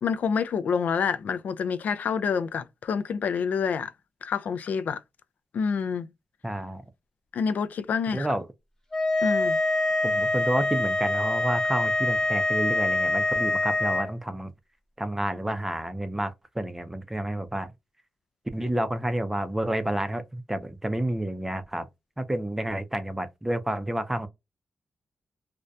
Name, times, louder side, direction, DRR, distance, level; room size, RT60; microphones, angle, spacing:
voice 1, 0.0-3.9 4.2-5.0 5.5-6.1 7.3-8.3 9.2-9.6, left 6 dB, 70° left, 0.3 m, -27 dB
voice 2, 6.4-6.8 8.1-8.5 10.0-14.5 15.0-17.7 18.5-21.9 22.2-24.3, right 1 dB, 10° right, 0.5 m, -29 dB
sound 1, 8.9-14.1, left 2 dB, 20° left, 0.9 m, -25 dB
2.7 x 2.1 x 2.3 m
cardioid pair, 75°, 3 cm